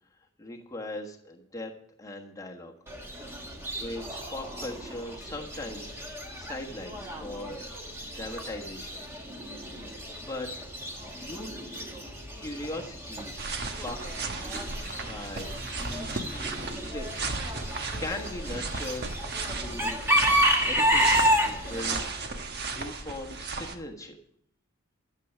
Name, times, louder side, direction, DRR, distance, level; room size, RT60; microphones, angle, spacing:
voice 1, 0.4-1.7 2.0-2.8 3.8-6.0 6.3-9.1 10.2-10.5 11.1-11.5 12.4-14.0 14.4-14.5 15.0-16.3 16.6-17.3 18.0-19.0 19.5-20.0 20.7-22.4 22.7-24.2, left 1 dB, 15° left, 0 dB, 1.3 m, -39 dB
Chicken rooster / Bird, 2.9-22.0, equal, 10° right, 1.5 m, -31 dB
sound 1, 13.4-23.7, right 3 dB, 45° right, 1.2 m, -35 dB
12.0 x 7.0 x 7.2 m, 0.68 s
head